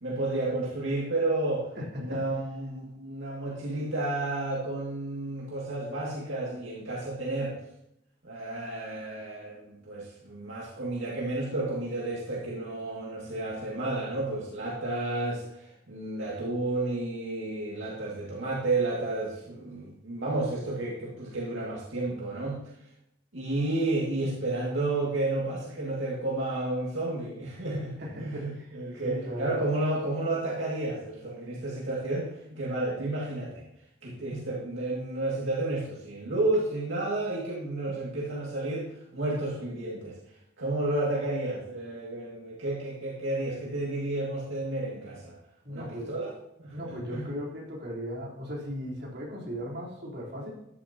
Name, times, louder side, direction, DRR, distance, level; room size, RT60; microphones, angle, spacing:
voice 1, 0.0-1.7 2.0-7.6 8.2-22.6 23.3-33.6 34.0-40.2 40.6-45.4 45.7-46.3 46.6-47.3, right 2 dB, 80° right, -5 dB, 2.2 m, -31 dB
voice 2, 1.8-2.2 28.0-28.8 29.0-29.6 32.5-32.6 45.6-46.1 46.7-50.5, equal, 60° right, -4 dB, 3.6 m, -37 dB
13.0 x 11.0 x 2.9 m, 0.79 s
head